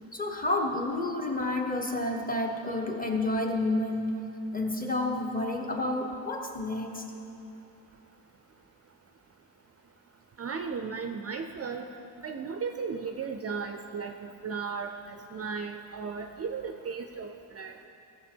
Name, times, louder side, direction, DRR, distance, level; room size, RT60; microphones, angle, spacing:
voice 1, 0.1-4.1 4.5-7.0, left 2 dB, 20° left, 2 dB, 0.9 m, -30 dB
voice 2, 10.4-11.9 12.2-17.8, right 5 dB, 40° right, 5 dB, 0.4 m, -36 dB
17.0 x 6.9 x 4.4 m, 2.8 s
wide cardioid pair, 175°, 41 cm